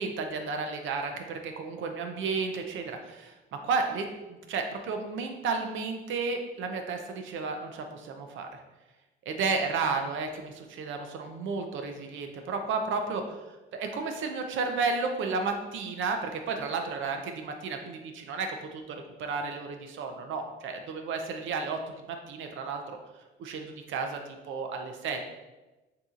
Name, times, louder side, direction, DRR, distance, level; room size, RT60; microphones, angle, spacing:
voice 1, 0.0-8.6 9.3-13.2 13.7-21.8 22.1-23.0 23.4-24.2 24.5-25.2, right 4 dB, 75° right, 5 dB, 0.6 m, -32 dB
6.7 x 2.8 x 2.4 m, 1.1 s
cardioid pair, 90°, 20 cm